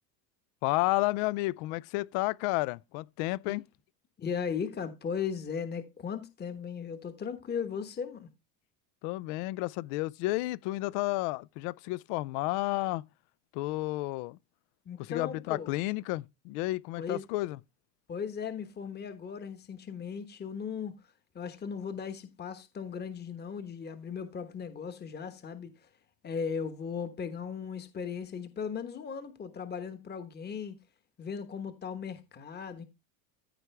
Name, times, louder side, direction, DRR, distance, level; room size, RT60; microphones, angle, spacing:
voice 1, 0.6-3.6 9.0-13.0 13.5-14.4 15.0-17.6, left 20 dB, 55° left, 0.6 m, -31 dB
voice 2, 4.2-8.3 14.9-15.7 17.0-17.3 18.1-21.0 21.3-25.9 26.2-30.8 31.2-32.8, left 6 dB, 20° left, 1.2 m, -37 dB
14.5 x 4.8 x 3.3 m
supercardioid pair, 115°, 49 cm